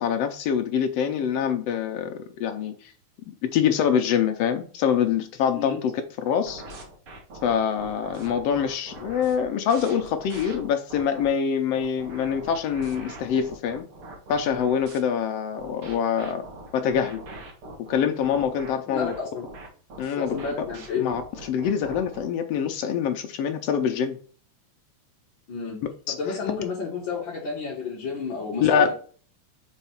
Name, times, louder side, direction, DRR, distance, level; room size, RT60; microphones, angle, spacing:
voice 1, 0.0-2.7 3.3-5.9 6.2-6.6 7.4-13.8 14.3-16.4 16.7-17.2 17.9-19.1 20.0-20.4 21.0-21.2 21.5-24.2 26.1-26.2 28.6-28.9, left 8 dB, 75° left, 7 dB, 1.5 m, -25 dB
sound 1, 6.5-11.3 11.7-15.0 15.6-22.3, right 2 dB, 50° right, 2.3 m, -42 dB
voice 2, 18.9-19.4 20.1-21.1 25.5-25.8 26.1-28.9, left 5 dB, 50° left, -4 dB, 1.6 m, -31 dB
5.4 x 4.0 x 5.7 m, 0.43 s
omnidirectional pair, 3.4 m